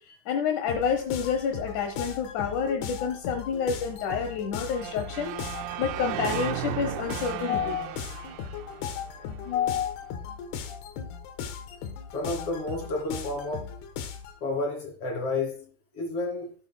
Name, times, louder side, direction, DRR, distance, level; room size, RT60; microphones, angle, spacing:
voice 1, 0.3-5.3 5.8-7.9 9.5-10.1, left 7 dB, 70° left, 2.0 m, -28 dB
sound 1, 0.7-14.4, left 7 dB, 90° left, 3.2 m, -38 dB
sound 2, 4.6-9.7, right 13 dB, 80° right, 2.3 m, -36 dB
voice 2, 12.1-13.7 14.4-16.5, left 2 dB, 40° left, 3.9 m, -31 dB
15.0 x 9.4 x 2.2 m
omnidirectional pair, 4.5 m